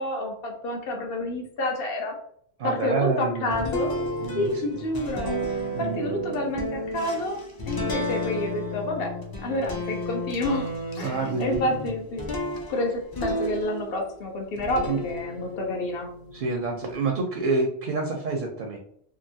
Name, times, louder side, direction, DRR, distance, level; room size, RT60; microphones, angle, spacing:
voice 1, 0.0-2.1 2.6-3.9 4.3-7.4 7.7-9.1 9.4-10.7 11.0-12.4 12.7-16.1, left 1 dB, 65° left, 1 dB, 0.9 m, -29 dB
voice 2, 2.6-3.7 4.2-4.8 5.7-6.0 11.0-11.6 14.9-15.0 16.3-18.8, right 4 dB, 60° right, 2 dB, 0.6 m, -28 dB
sound 1, 3.5-14.1 14.6-16.9, equal, 35° left, 0.3 m, -32 dB
2.9 x 2.5 x 2.6 m, 0.66 s
omnidirectional pair, 1.1 m